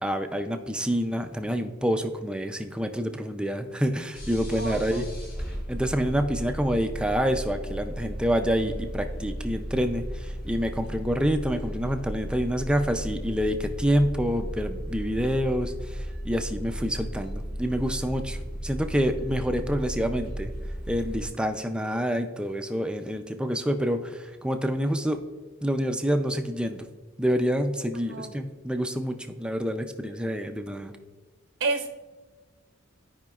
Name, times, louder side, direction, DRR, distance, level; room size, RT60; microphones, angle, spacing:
voice 1, 0.0-5.1 5.7-20.5 20.9-25.2 25.6-26.9 27.2-30.9, equal, 5° right, 6 dB, 0.4 m, -27 dB
sound 1, 4.1-21.3, equal, 50° left, 1.9 m, -35 dB
voice 2, 4.5-5.0 28.1-28.3 31.6-31.9, right 3 dB, 65° right, 4 dB, 0.7 m, -29 dB
13.5 x 5.0 x 2.4 m, 1.4 s
head